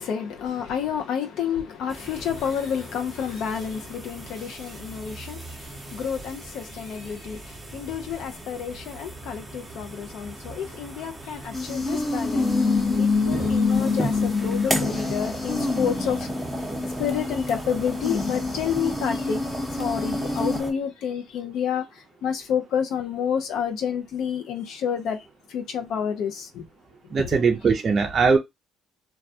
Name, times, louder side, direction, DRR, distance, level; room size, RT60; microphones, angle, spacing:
voice 1, 0.0-5.4 5.9-7.4 7.7-12.6 13.0-16.3 17.0-19.4 19.8-21.8 22.2-25.2 25.5-26.6, left 8 dB, 70° left, 0.5 m, -29 dB
sound 1, 1.9-20.7, right 2 dB, 10° right, 0.7 m, -36 dB
sound 2, 11.5-20.6, left 3 dB, 30° left, 0.7 m, -26 dB
voice 2, 27.1-28.4, right 5 dB, 40° right, 0.4 m, -20 dB
2.2 x 2.1 x 2.7 m
supercardioid pair, 75°, 0 cm